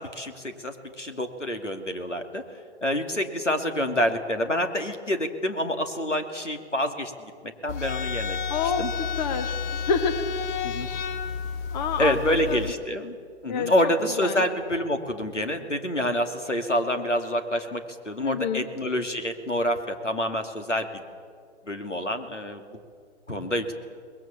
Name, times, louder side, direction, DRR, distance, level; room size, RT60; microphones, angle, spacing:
voice 1, 0.0-2.4 2.8-7.3 7.6-8.4 8.8-8.9 10.6-10.9 12.0-13.2 13.4-20.9 21.7-22.6 23.3-23.7, equal, 85° left, 6 dB, 2.4 m, -27 dB
sound 1, 7.7-12.7, left 6 dB, 15° left, 0.5 m, -31 dB
voice 2, 8.5-8.8 9.1-10.2 11.7-12.7 13.5-14.4 18.2-18.7, left 6 dB, 40° left, 10 dB, 1.5 m, -28 dB
24.0 x 21.0 x 7.3 m, 2.1 s
figure-of-eight pair, 120°, 35 cm